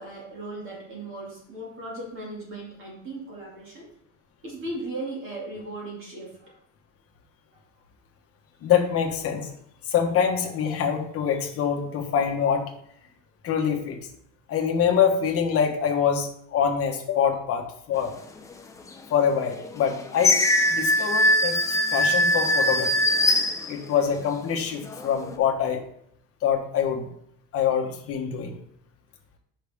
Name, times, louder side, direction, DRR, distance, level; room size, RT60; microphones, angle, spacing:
voice 1, 0.0-3.9 4.4-6.6 7.5-7.6 23.6-23.8, right 2 dB, 35° right, -3 dB, 2.2 m, -37 dB
voice 2, 8.6-9.5 9.8-12.7 13.4-14.0 14.5-18.1 19.1-20.4 20.7-22.9 23.7-25.8 26.4-27.1 27.5-28.5, left 7 dB, 40° left, 2 dB, 1.1 m, -25 dB
sound 1, 18.8-18.9 19.5-24.2 24.7-25.4, left 1 dB, 10° left, 0.4 m, -22 dB
6.6 x 5.7 x 3.5 m, 0.70 s
cardioid pair, 160°, 35 cm